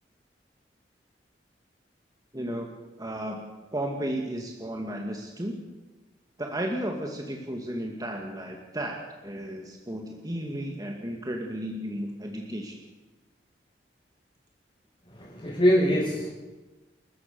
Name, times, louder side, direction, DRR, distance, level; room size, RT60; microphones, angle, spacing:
voice 1, 2.3-2.7 3.0-3.5 3.7-5.6 6.4-12.7, right 1 dB, 20° right, 1 dB, 2.3 m, -33 dB
voice 2, 15.1-16.3, equal, 30° left, -7 dB, 6.9 m, -23 dB
29.5 x 14.5 x 7.1 m, 1.1 s
head